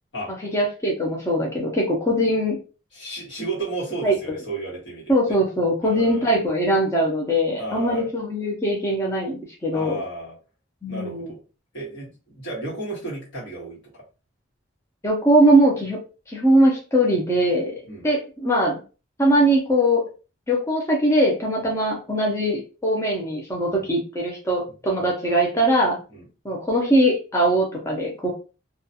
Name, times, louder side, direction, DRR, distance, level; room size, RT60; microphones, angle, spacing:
voice 1, 0.3-2.6 4.0-4.2 5.1-10.0 10.8-11.3 15.0-16.0 16.3-18.8 19.2-20.1 20.5-26.0 26.4-28.3, right 1 dB, 15° left, -2 dB, 0.5 m, -21 dB
voice 2, 2.9-5.4 5.8-6.3 7.6-8.1 9.7-10.3 10.9-11.4 11.7-14.0 17.9-18.1 23.8-23.9 26.1-26.2, right 2 dB, 75° left, -4 dB, 1.3 m, -33 dB
2.4 x 2.2 x 2.7 m, 0.34 s
head